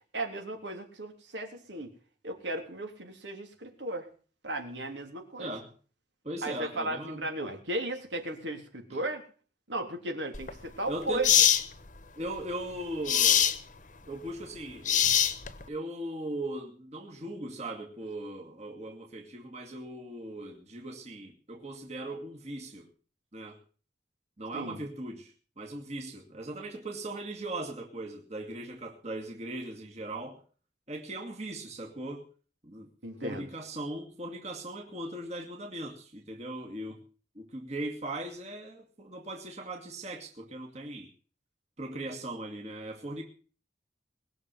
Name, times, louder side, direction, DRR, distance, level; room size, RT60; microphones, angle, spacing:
voice 1, 0.1-1.9 2.2-4.1 4.4-5.5 6.4-9.2 9.7-11.3 24.5-24.8 33.0-33.5, right 1 dB, 80° right, 3 dB, 3.5 m, -35 dB
voice 2, 5.4-5.7 6.2-7.2 8.9-9.0 10.9-11.3 12.2-13.5 14.1-15.1 15.7-22.9 23.3-23.6 24.4-30.4 30.9-32.3 32.6-32.9 33.2-37.0 37.3-41.1 41.8-43.2, right 1 dB, 35° right, 1 dB, 2.5 m, -39 dB
sound 1, 10.3-10.5 11.2-11.6 13.1-13.6 14.8-15.6, left 9 dB, 45° left, 1.1 m, -22 dB
21.0 x 7.0 x 7.8 m, 0.41 s
head